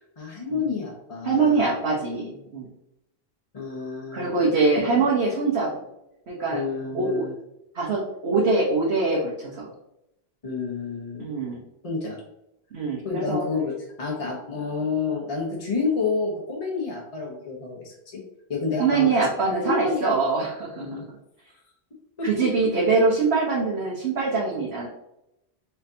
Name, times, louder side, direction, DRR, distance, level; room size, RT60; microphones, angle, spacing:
voice 1, 0.2-1.7 3.5-4.3 6.5-7.3 10.4-11.2 11.8-12.2 13.0-13.7 14.0-18.2 18.5-19.1 19.6-20.1 20.8-21.1 22.2-22.3 24.5-24.6, left 4 dB, 35° left, -3 dB, 1.0 m, -29 dB
voice 2, 1.2-2.7 4.1-5.7 6.3-6.6 6.9-7.2 7.7-9.7 11.2-11.6 12.7-13.5 18.8-20.9 22.2-24.9, right 4 dB, 85° right, -4 dB, 1.2 m, -23 dB
4.5 x 4.2 x 2.7 m, 0.86 s
omnidirectional pair, 1.0 m